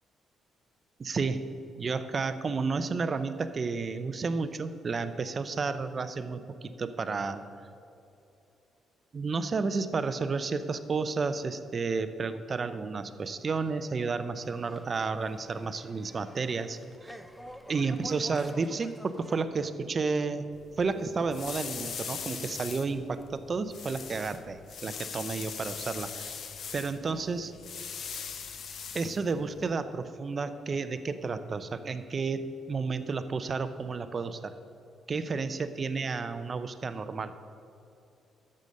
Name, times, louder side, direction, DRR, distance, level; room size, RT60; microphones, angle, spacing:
voice 1, 1.0-1.5 1.8-7.4 9.1-17.2 17.7-20.4 20.8-26.4 26.7-27.5 28.9-34.5 35.1-37.3, right 4 dB, 40° right, 11 dB, 0.5 m, -31 dB
sound 1, 14.4-19.4, equal, 5° left, 0.6 m, -48 dB
sound 2, 20.5-29.7, left 6 dB, 60° left, 0.8 m, -41 dB
9.2 x 6.5 x 6.4 m, 2.6 s
cardioid pair, 90°, 0 cm